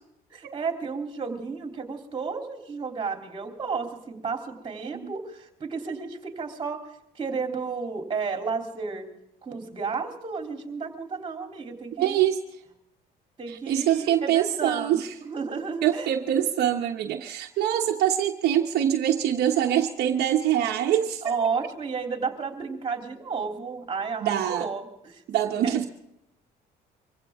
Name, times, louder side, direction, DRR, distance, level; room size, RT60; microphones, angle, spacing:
voice 1, 0.3-6.8 7.1-9.1 9.4-12.2 13.4-16.1 21.2-25.2 25.6-25.8, right 5 dB, 30° right, 3 dB, 3.3 m, -32 dB
voice 2, 12.0-12.4 13.5-15.1 15.8-21.3 24.2-24.7 25.3-25.9, right 10 dB, 70° right, 2 dB, 1.2 m, -24 dB
24.5 x 16.0 x 3.7 m, 0.80 s
cardioid pair, 110°, 17 cm